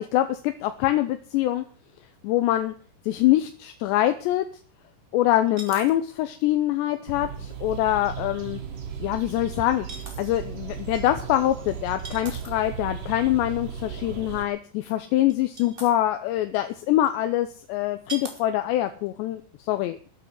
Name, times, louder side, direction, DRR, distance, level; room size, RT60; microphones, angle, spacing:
voice 1, 0.0-1.6 2.2-2.7 3.1-4.5 5.1-8.6 9.0-9.9 10.2-20.1, left 14 dB, 80° left, 9 dB, 2.9 m, -24 dB
sound 1, 2.1-2.2 2.5-2.6 5.5-6.0 6.4-6.5 8.2-8.4 9.9-10.3 11.9-12.7 14.9-15.0 15.3-15.9 17.0-17.1 18.1-18.4 18.9-19.1, right 3 dB, 15° right, 2.6 m, -40 dB
sound 2, 7.1-14.4, right 7 dB, 50° right, 3.7 m, -36 dB
13.0 x 7.7 x 9.4 m, 0.42 s
omnidirectional pair, 5.3 m